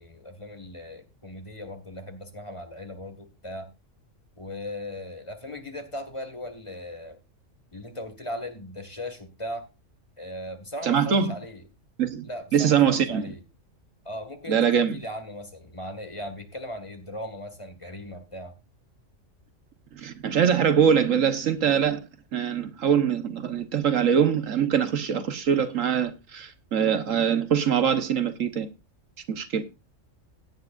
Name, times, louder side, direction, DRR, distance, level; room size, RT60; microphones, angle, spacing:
voice 1, 0.0-3.7 4.4-7.2 7.7-9.7 10.2-11.6 12.2-13.4 14.0-14.6 14.9-18.5, left 1 dB, 25° left, 2.0 m, -38 dB
voice 2, 10.8-11.3 12.0-13.3 14.5-15.0 19.9-22.0 22.3-28.7 29.3-29.6, right 8 dB, 80° right, 1.5 m, -23 dB
17.0 x 9.5 x 2.5 m
omnidirectional pair, 1.3 m